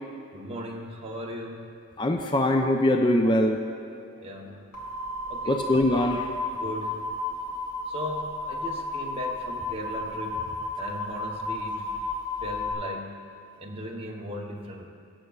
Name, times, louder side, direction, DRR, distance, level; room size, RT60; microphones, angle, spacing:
voice 1, 0.3-1.8 4.2-4.6 5.3-5.7 6.5-7.1 7.9-10.5 10.8-12.0 12.4-13.1 13.6-14.9, equal, 25° right, -1 dB, 0.9 m, -37 dB
voice 2, 2.0-3.6 5.5-6.3, left 1 dB, 20° left, 3 dB, 0.4 m, -22 dB
sound 1, 4.7-12.7, left 2 dB, 85° left, 2.1 m, -33 dB
20.5 x 7.6 x 2.4 m, 2.6 s
head